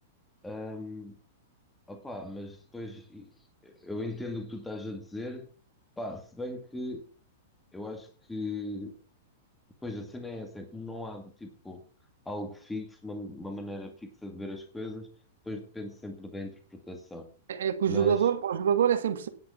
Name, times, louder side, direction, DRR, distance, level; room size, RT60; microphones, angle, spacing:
voice 1, 0.4-1.2 1.9-3.3 3.6-5.5 6.0-7.0 7.7-8.9 9.8-11.8 12.3-15.1 15.4-17.3 17.9-18.3, left 1 dB, 5° left, 2.1 m, -38 dB
voice 2, 17.5-19.3, right 8 dB, 80° right, 1.9 m, -25 dB
10.5 x 7.9 x 5.7 m
hypercardioid pair, 140°, 0 cm